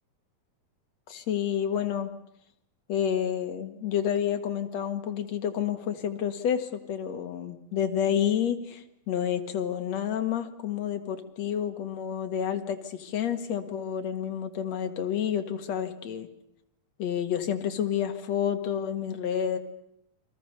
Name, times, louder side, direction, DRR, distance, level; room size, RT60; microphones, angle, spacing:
voice 1, 1.1-2.1 2.9-16.3 17.0-19.6, left 9 dB, 55° left, 7 dB, 2.6 m, -29 dB
30.0 x 23.5 x 6.7 m, 0.76 s
omnidirectional pair, 4.2 m